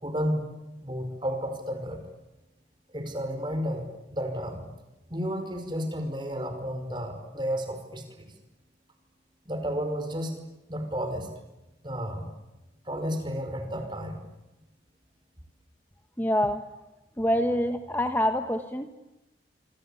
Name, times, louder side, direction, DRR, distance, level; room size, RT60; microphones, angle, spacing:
voice 1, 0.0-0.5 0.8-2.0 2.9-4.7 5.1-8.3 9.5-10.4 10.7-11.3 11.8-12.3 12.9-14.2, equal, 25° right, 7 dB, 5.2 m, -32 dB
voice 2, 16.2-16.6 17.2-18.9, equal, 10° left, 7 dB, 1.2 m, -26 dB
27.0 x 25.0 x 8.5 m, 0.99 s
head